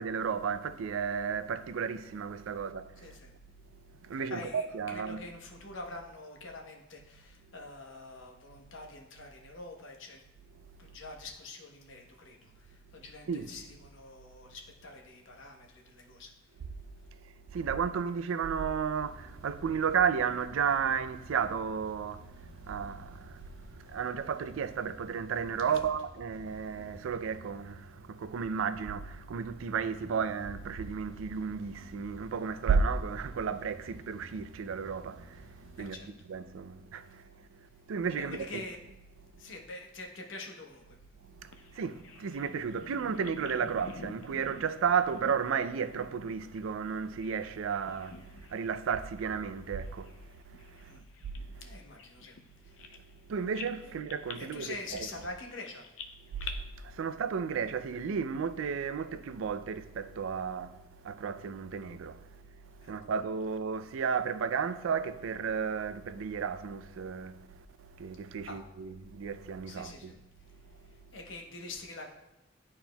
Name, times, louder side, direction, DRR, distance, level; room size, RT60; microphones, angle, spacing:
voice 1, 0.0-3.1 4.0-5.2 13.3-13.5 17.5-23.4 23.8-36.0 36.3-37.2 37.9-38.5 41.4-50.1 50.5-51.0 53.3-55.1 56.4-60.8 61.0-62.2 62.8-67.3 68.0-70.1, right 6 dB, 85° right, 0.4 m, -33 dB
voice 2, 3.0-3.3 4.1-10.2 10.8-16.3 25.7-25.8 35.8-36.1 38.1-38.8 39.3-41.0 50.9-51.1 51.6-52.4 52.6-53.0 53.8-53.9 54.3-55.9 62.8-62.9 68.4-68.6 69.7-70.2 70.8-72.1, left 2 dB, 70° left, 0.9 m, -45 dB
sound 1, 18.9-35.8, right 1 dB, 55° left, 1.9 m, -54 dB
Bird vocalization bird call bird song, 41.5-47.5 47.8-48.7 49.0-49.2 49.8-53.2 53.5-56.5, left 5 dB, 90° left, 0.5 m, -49 dB
10.5 x 4.3 x 2.2 m
head